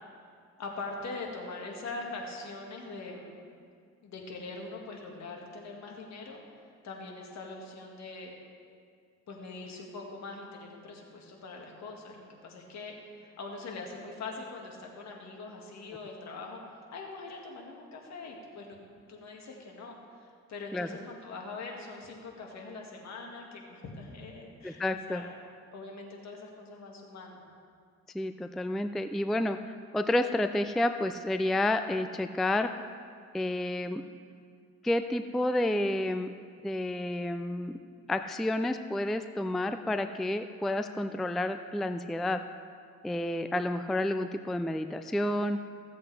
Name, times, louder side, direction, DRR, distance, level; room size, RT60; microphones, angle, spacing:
voice 1, 0.6-3.4 4.0-6.4 6.8-8.3 9.3-16.6 16.9-18.8 19.1-25.3 25.7-27.4, left 3 dB, 65° left, 0 dB, 1.8 m, -42 dB
voice 2, 24.6-25.2 28.1-32.7 33.3-34.0 34.8-36.3 36.6-37.7 38.1-42.4 43.0-45.6, left 1 dB, ahead, 9 dB, 0.3 m, -30 dB
15.5 x 7.8 x 3.3 m, 2.2 s
cardioid pair, 90°, 30 cm